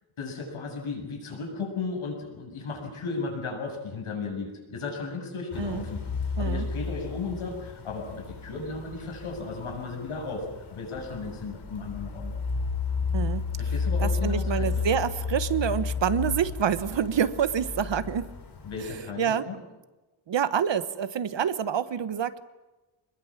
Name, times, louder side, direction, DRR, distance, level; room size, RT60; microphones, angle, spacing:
voice 1, 0.2-6.0 6.4-12.3 13.6-14.9 18.6-19.6, left 4 dB, 80° left, 3 dB, 7.6 m, -35 dB
sound 1, 5.5-19.0, left 4 dB, 55° left, 4.5 m, -32 dB
voice 2, 14.0-18.3 19.2-19.5 20.3-22.4, right 8 dB, 60° right, 12 dB, 1.4 m, -27 dB
27.5 x 21.5 x 7.4 m, 1.1 s
wide cardioid pair, 135°, 48 cm